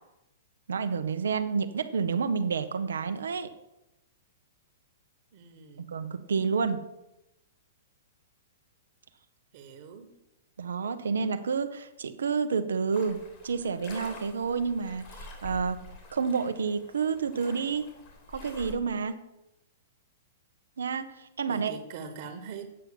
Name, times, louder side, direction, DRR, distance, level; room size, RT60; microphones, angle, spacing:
voice 1, 0.7-3.5 5.9-6.8 10.6-15.1 15.4-15.8 16.1-17.9 18.3-19.2 20.8-21.8, right 5 dB, 80° right, 9 dB, 0.9 m, -29 dB
voice 2, 5.3-5.9 9.5-10.1 21.5-22.7, right 6 dB, 50° right, 6 dB, 1.5 m, -43 dB
sound 1, 12.9-18.7, left 2 dB, 40° left, 2.8 m, -47 dB
8.9 x 5.7 x 7.0 m, 0.89 s
hypercardioid pair, 125°, 0 cm